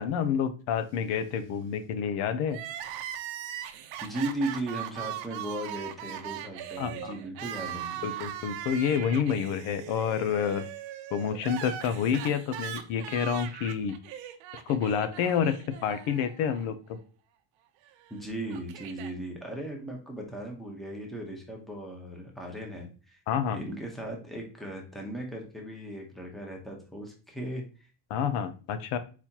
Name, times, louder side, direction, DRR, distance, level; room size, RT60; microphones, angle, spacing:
voice 1, 0.0-2.6 6.8-7.2 8.0-10.6 11.1-14.0 14.5-17.0 23.3-23.6 28.1-29.0, left 7 dB, 85° left, 11 dB, 0.8 m, -29 dB
Crying sobbing, 2.5-16.6 16.9-17.0 18.0-19.1, right 11 dB, 70° right, 0.8 m, -40 dB
voice 2, 4.0-8.0 18.1-23.2 23.5-27.9, right 1 dB, ahead, 0 dB, 0.8 m, -37 dB
4.4 x 4.1 x 2.8 m, 0.35 s
cardioid pair, 165°, 46 cm